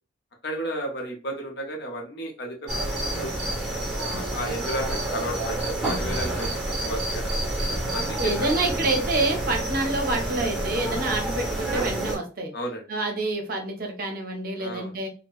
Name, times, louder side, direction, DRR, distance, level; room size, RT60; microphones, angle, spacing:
voice 1, 0.4-3.4 4.0-7.3 7.9-8.5 12.5-12.8 14.6-14.9, right 1 dB, 55° left, 1 dB, 0.8 m, -33 dB
sound 1, 2.7-12.2, right 1 dB, 5° right, 0.8 m, -28 dB
voice 2, 8.2-12.5 12.9-15.1, right 2 dB, 50° right, 3 dB, 0.6 m, -27 dB
2.8 x 2.0 x 2.3 m, 0.36 s
head